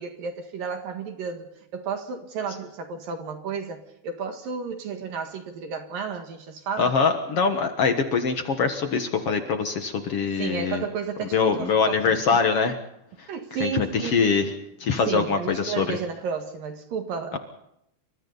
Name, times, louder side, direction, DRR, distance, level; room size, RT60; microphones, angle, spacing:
voice 1, 0.0-7.0 10.4-12.1 13.3-14.3 15.1-17.4, right 6 dB, 60° right, 3.2 m, -32 dB
voice 2, 6.8-10.8 11.3-12.8 13.2-13.3 13.6-14.5 14.8-16.0 17.3-17.4, left 5 dB, 80° left, 1.3 m, -23 dB
29.5 x 25.0 x 4.1 m
omnidirectional pair, 5.1 m